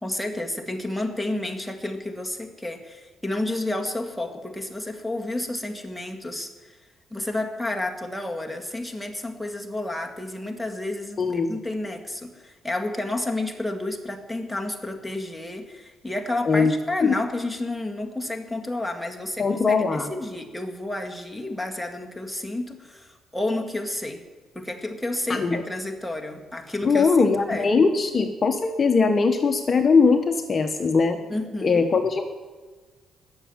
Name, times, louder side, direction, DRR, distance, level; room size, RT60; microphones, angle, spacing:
voice 1, 0.0-6.8 7.1-24.2 24.6-27.7 31.3-31.9, left 2 dB, 5° left, 2 dB, 1.8 m, -31 dB
voice 2, 11.2-11.5 16.5-16.7 17.0-17.1 19.4-20.1 25.3-25.6 26.8-31.2 31.6-32.2, left 4 dB, 35° left, 6 dB, 1.0 m, -20 dB
19.0 x 7.3 x 7.3 m, 1.4 s
cardioid pair, 90°, 0 cm